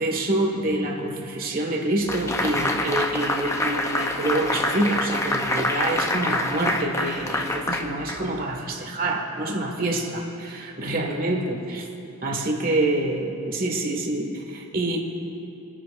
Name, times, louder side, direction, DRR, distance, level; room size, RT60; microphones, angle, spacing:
voice 1, 0.0-11.9 12.2-15.0, right 1 dB, 40° right, 2 dB, 1.6 m, -26 dB
sound 1, 2.1-8.5, left 1 dB, 15° left, 0.6 m, -26 dB
30.0 x 10.5 x 2.5 m, 2.9 s
head